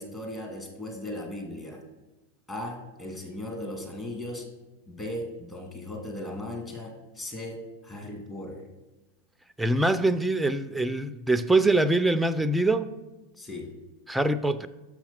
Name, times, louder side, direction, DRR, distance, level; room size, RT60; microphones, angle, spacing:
voice 1, 0.0-1.8 2.5-4.5 4.9-8.7 13.4-13.7, left 1 dB, 20° left, 2.1 m, -37 dB
voice 2, 9.6-12.9 14.1-14.7, right 2 dB, 5° right, 0.5 m, -24 dB
6.5 x 5.8 x 5.8 m
hypercardioid pair, 100°, 0 cm